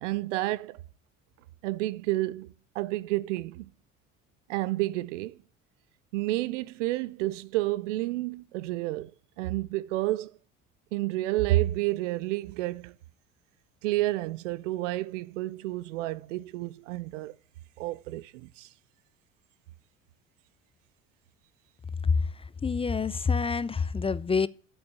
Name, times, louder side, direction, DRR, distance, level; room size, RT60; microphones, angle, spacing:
voice 1, 0.0-0.8 1.6-3.7 4.5-5.4 6.1-10.3 10.9-13.0 13.8-17.4 17.8-18.7, right 17 dB, 90° right, 0.5 m, -30 dB
voice 2, 22.6-24.5, left 5 dB, 15° left, 0.4 m, -27 dB
8.6 x 7.8 x 8.3 m
hypercardioid pair, 60°, 36 cm